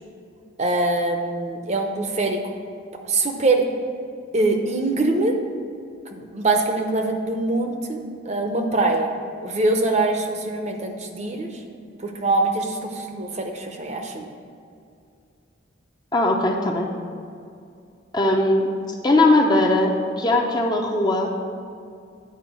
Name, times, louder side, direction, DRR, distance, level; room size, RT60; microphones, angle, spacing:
voice 1, 0.6-2.4 3.0-3.6 4.3-5.3 6.1-9.1 9.4-11.6 12.0-14.3, right 2 dB, 35° right, 4 dB, 0.7 m, -23 dB
voice 2, 16.1-16.9 18.1-18.7 19.0-21.3, left 2 dB, 20° left, 1 dB, 0.7 m, -19 dB
9.5 x 4.8 x 6.1 m, 2.4 s
head